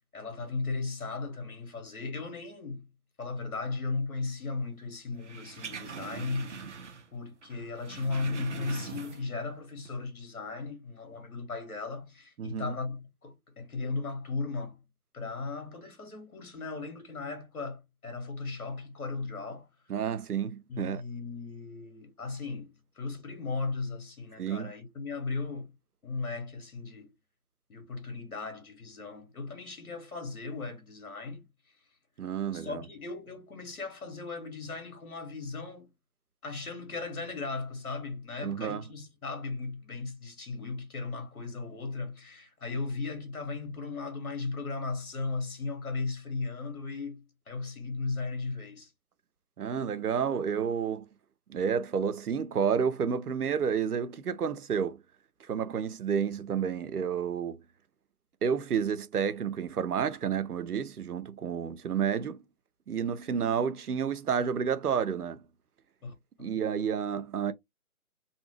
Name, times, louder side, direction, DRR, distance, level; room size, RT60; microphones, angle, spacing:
voice 1, 0.1-2.9 3.2-6.8 7.1-14.8 15.1-19.7 20.7-25.7 26.0-27.1 27.7-31.5 32.5-35.9 36.4-48.9 66.0-66.5, left 3 dB, 70° left, 1.5 m, -36 dB
sound 1, 5.2-7.2 7.4-9.4 9.8-9.9, right 6 dB, 55° right, 0.7 m, -42 dB
voice 2, 12.4-12.8 19.9-21.0 24.4-24.7 32.2-32.8 38.4-38.8 49.6-51.1 51.5-55.0 55.5-57.6 58.4-62.4 62.9-65.4 66.4-67.5, right 7 dB, 85° right, 0.6 m, -30 dB
2.7 x 2.6 x 3.1 m
figure-of-eight pair, 155°, 44 cm